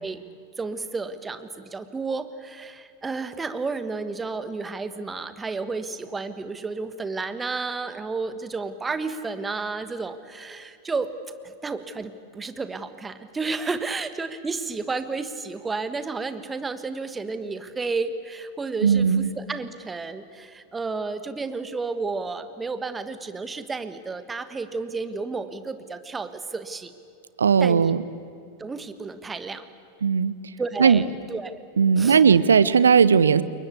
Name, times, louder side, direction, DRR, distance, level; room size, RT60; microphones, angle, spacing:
voice 1, 0.6-11.1 11.4-26.9 27.6-27.9 28.6-29.6 30.6-31.6 32.0-32.2, right 4 dB, 15° right, 10 dB, 1.5 m, -32 dB
voice 2, 18.8-19.3 27.4-28.0 30.0-30.3 30.8-31.0 31.8-33.4, right 6 dB, 70° right, 17 dB, 0.8 m, -17 dB
29.0 x 23.0 x 8.4 m, 2.4 s
figure-of-eight pair, 90°, 0 cm